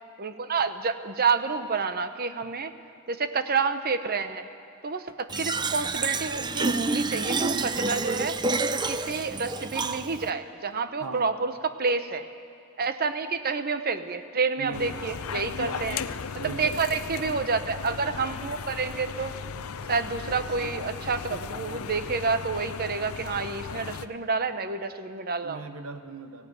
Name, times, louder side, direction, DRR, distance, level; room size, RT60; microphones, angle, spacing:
voice 1, 0.2-2.7 3.1-4.5 4.8-8.4 8.7-12.3 12.8-16.0 16.4-19.4 19.9-25.6, right 4 dB, 45° right, 10 dB, 0.9 m, -29 dB
Fill (with liquid), 5.3-10.3, right 3 dB, 20° right, 0.5 m, -28 dB
voice 2, 11.0-11.4 14.6-15.1 15.7-17.0 23.7-24.0 25.4-26.5, right 3 dB, 80° right, 9 dB, 1.0 m, -40 dB
sound 1, 14.7-24.1, left 6 dB, 85° left, 0.6 m, -36 dB
17.5 x 16.5 x 9.3 m, 2.5 s
head